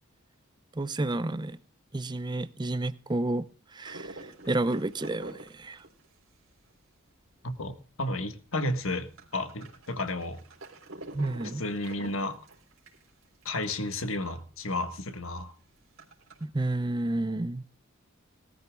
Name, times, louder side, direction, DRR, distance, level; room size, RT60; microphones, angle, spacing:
voice 1, 0.8-1.6 1.9-3.5 3.7-5.8 11.1-11.6 16.4-17.6, right 2 dB, 20° right, 0.6 m, -30 dB
sound 1, 3.8-7.9 8.2-8.3 8.5-13.8 14.2-14.3 14.5-14.6 15.2-16.4, right 2 dB, 80° right, 3.6 m, -47 dB
voice 2, 7.4-10.4 11.6-12.4 13.4-15.5, left 2 dB, 80° left, 1.5 m, -32 dB
19.0 x 13.5 x 2.3 m
head